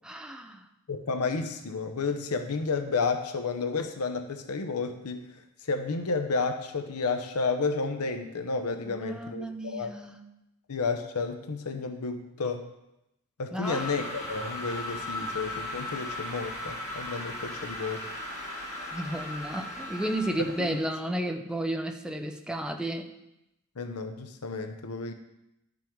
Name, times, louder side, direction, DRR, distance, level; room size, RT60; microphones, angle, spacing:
voice 1, 0.0-0.6 8.9-10.2 13.5-13.9 18.9-23.1, right 1 dB, 5° right, 5 dB, 0.6 m, -33 dB
voice 2, 0.9-5.2 5.6-9.9 10.7-12.7 13.4-18.1 20.4-20.7 23.8-25.1, left 4 dB, 80° left, 7 dB, 0.8 m, -31 dB
sound 1, 13.6-21.0, left 1 dB, 35° left, 3.5 m, -37 dB
12.0 x 5.4 x 4.5 m, 0.88 s
head